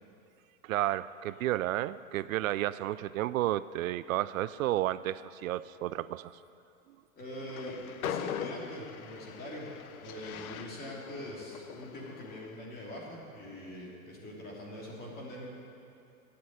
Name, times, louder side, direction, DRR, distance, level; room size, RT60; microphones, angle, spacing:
voice 1, 0.6-6.3, right 14 dB, 75° right, 16 dB, 0.5 m, -32 dB
voice 2, 7.1-9.7 10.0-15.4, left 1 dB, 20° left, -3 dB, 3.0 m, -43 dB
Train, 7.4-12.7, left 9 dB, 85° left, 0.8 m, -42 dB
12.5 x 8.6 x 8.9 m, 2.7 s
supercardioid pair, 145°, 41 cm